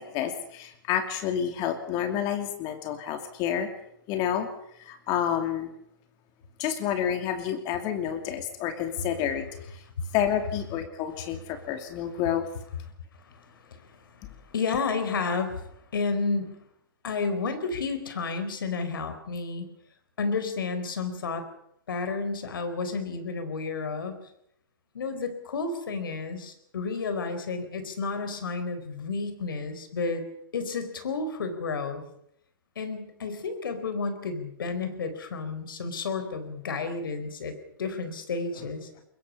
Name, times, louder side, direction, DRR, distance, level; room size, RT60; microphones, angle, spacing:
voice 1, 0.0-3.7 4.1-4.5 4.8-5.7 6.6-9.5 9.7-9.8 10.1-12.4, left 9 dB, 35° left, 6 dB, 2.7 m, -29 dB
voice 2, 13.3-13.9 14.5-15.6 15.9-16.6 17.0-19.7 20.2-21.5 21.9-24.2 24.9-30.2 30.5-32.0 32.8-38.9, left 4 dB, 70° left, 9 dB, 4.4 m, -31 dB
24.0 x 22.0 x 5.6 m, 0.73 s
hypercardioid pair, 120°, 12 cm